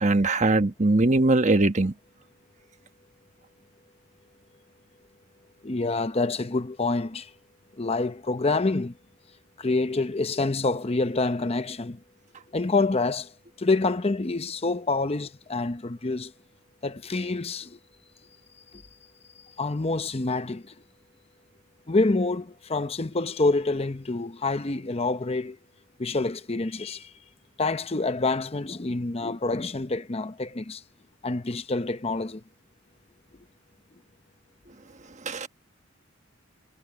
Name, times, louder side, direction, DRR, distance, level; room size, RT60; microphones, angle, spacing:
voice 1, 0.0-1.9 35.3-35.5, right 2 dB, 35° right, 1.2 m, -21 dB
voice 2, 5.6-7.3 7.8-8.9 9.6-12.0 12.5-13.3 13.6-16.3 16.8-17.7 19.6-20.7 21.9-25.6 26.0-27.1 27.6-30.8 31.2-32.4, left 3 dB, 30° left, 0.8 m, -27 dB
head